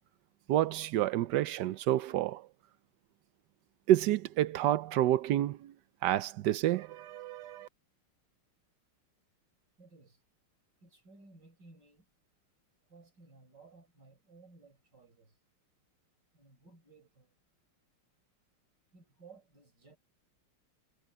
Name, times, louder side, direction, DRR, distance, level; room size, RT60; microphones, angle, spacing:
voice 1, 0.5-2.4 3.9-5.7 6.0-7.7, right 13 dB, 80° right, 0.9 m, -29 dB
voice 2, 9.8-10.2 10.8-12.1 12.9-15.3 16.3-17.3 18.9-20.0, right 3 dB, 50° right, 5.8 m, -58 dB
omnidirectional pair, 2.4 m